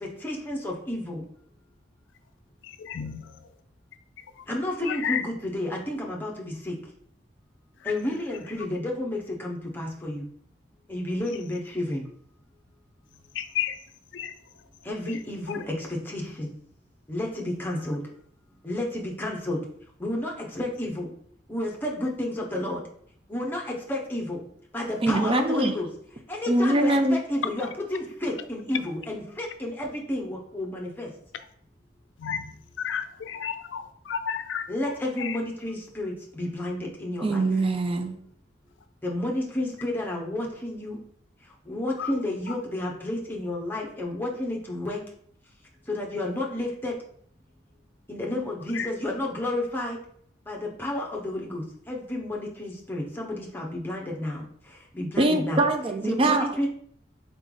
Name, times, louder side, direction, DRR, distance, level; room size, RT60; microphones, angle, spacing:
voice 1, 0.0-1.2 4.5-6.7 7.8-10.3 10.9-12.0 14.8-16.5 17.1-18.0 18.6-19.6 20.0-21.1 21.5-22.8 23.3-24.4 24.7-25.9 26.3-31.1 34.7-37.5 39.0-41.0 41.7-45.0 45.9-46.9 48.1-50.0 50.5-54.4 54.9-55.6 56.1-56.7, left 1 dB, 10° left, -1 dB, 0.8 m, -31 dB
voice 2, 2.6-3.5 4.2-4.5 4.8-5.2 7.8-7.9 13.3-13.8 14.1-14.3 15.1-15.2 15.5-15.6 32.2-35.4 42.0-42.2 42.5-42.6 48.7-48.9, left 8 dB, 80° left, 9 dB, 0.4 m, -33 dB
voice 3, 25.0-25.7 26.5-27.2 37.2-38.2 55.2-56.5, right 2 dB, 30° right, 6 dB, 0.4 m, -23 dB
4.0 x 3.3 x 3.7 m, 0.63 s
head